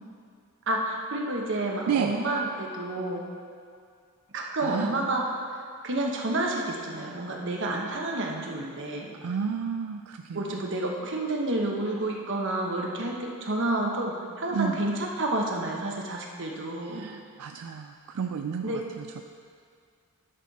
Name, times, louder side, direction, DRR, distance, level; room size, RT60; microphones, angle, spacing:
voice 1, 0.7-3.3 4.3-5.2 5.8-9.2 10.3-17.1 18.6-18.8, right 2 dB, 60° right, 0 dB, 1.1 m, -29 dB
voice 2, 4.6-4.9 9.2-10.6 14.5-14.8 16.8-19.2, right 7 dB, 85° right, 5 dB, 0.4 m, -32 dB
11.0 x 6.4 x 4.1 m, 2.2 s
head